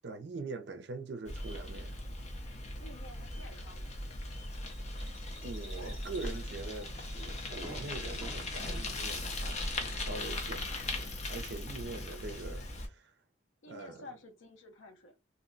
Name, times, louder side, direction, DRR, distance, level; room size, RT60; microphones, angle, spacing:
voice 1, 0.0-2.0 5.4-13.1 13.7-14.1, right 3 dB, 60° right, 0.4 m, -43 dB
Bicycle, 1.3-12.9, left 1 dB, 35° left, 0.6 m, -39 dB
voice 2, 2.8-4.0 13.6-15.2, left 1 dB, 80° left, 0.6 m, -51 dB
Bell, 4.5-9.6 9.8-10.6 10.9-11.0, left 1 dB, 60° left, 1.3 m, -55 dB
Fireworks, 6.6-6.7 7.1-7.2 7.6-11.4 11.7-12.6, equal, 10° right, 0.6 m, -54 dB
2.6 x 2.1 x 3.8 m
head